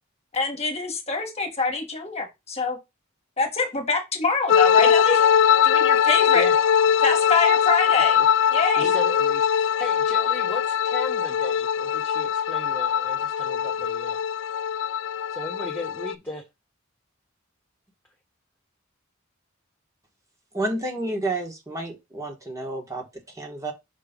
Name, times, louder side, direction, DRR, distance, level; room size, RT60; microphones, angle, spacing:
voice 1, 0.3-2.8 3.4-5.1 5.6-6.4 7.0-8.2 8.5-8.9, left 4 dB, 30° left, 1.6 m, -25 dB
sound 1, 4.5-16.1, left 8 dB, 60° left, 0.3 m, -21 dB
voice 2, 7.9-8.3 8.6-14.2 15.3-16.4, left 2 dB, 10° left, 1.1 m, -36 dB
voice 3, 20.5-23.7, right 2 dB, 15° right, 1.6 m, -30 dB
5.9 x 3.3 x 5.2 m
head